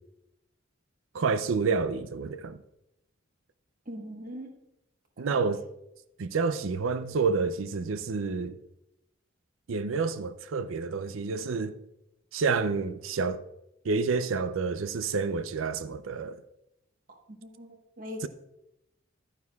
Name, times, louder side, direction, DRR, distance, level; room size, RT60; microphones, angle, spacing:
voice 1, 1.1-2.6 5.2-5.6 6.2-8.6 9.7-11.8 12.3-13.4 13.8-16.4 18.2-18.3, right 4 dB, 90° right, 0.5 m, -29 dB
voice 2, 3.9-4.5 5.2-5.4 17.1-18.3, left 1 dB, 45° right, 1.3 m, -42 dB
11.5 x 9.6 x 2.3 m
head